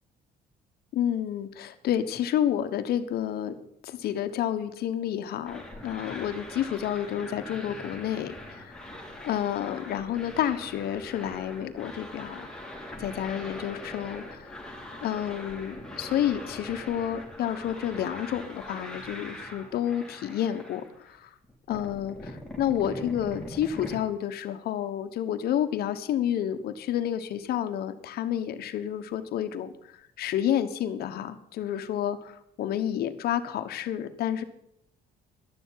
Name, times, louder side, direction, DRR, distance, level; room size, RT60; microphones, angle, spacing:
voice 1, 0.9-3.5 3.8-8.9 9.2-12.5 13.0-14.5 15.0-21.3 21.7-29.7 30.2-34.4, left 10 dB, 70° left, 9 dB, 1.2 m, -30 dB
sound 1, 5.4-21.2 21.4-24.0, left 1 dB, 5° left, 3.6 m, -42 dB
11.5 x 7.1 x 9.4 m, 0.75 s
cardioid pair, 110°, 17 cm